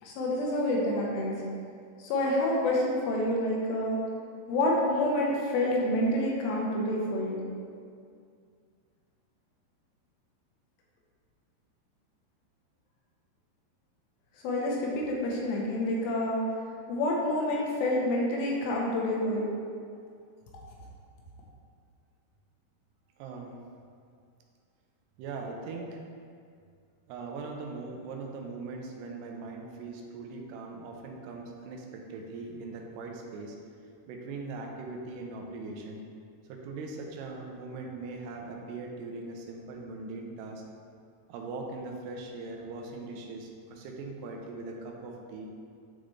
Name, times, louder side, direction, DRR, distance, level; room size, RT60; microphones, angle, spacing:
voice 1, 0.0-1.4 2.0-4.0 4.5-7.4 14.4-16.4 16.9-19.5, left 1 dB, 90° left, -3 dB, 3.2 m, -28 dB
voice 2, 23.2-23.6 25.2-26.0 27.1-33.6 34.1-36.0 36.5-40.6 41.3-45.5, right 3 dB, 85° right, 1 dB, 2.8 m, -40 dB
10.0 x 4.0 x 3.2 m, 2.2 s
omnidirectional pair, 4.8 m